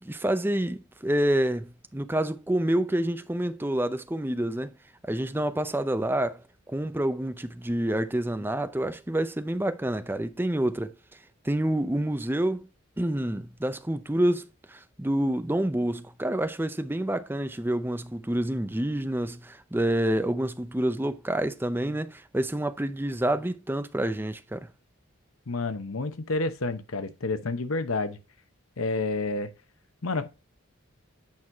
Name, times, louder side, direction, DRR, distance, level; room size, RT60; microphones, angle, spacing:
voice 1, 0.0-4.7 5.1-6.4 6.7-10.9 11.4-12.7 13.0-24.7, right 1 dB, 10° right, 0.5 m, -28 dB
voice 2, 25.5-28.2 28.8-29.5 30.0-30.3, left 3 dB, 80° left, 0.9 m, -29 dB
8.5 x 4.7 x 3.5 m
head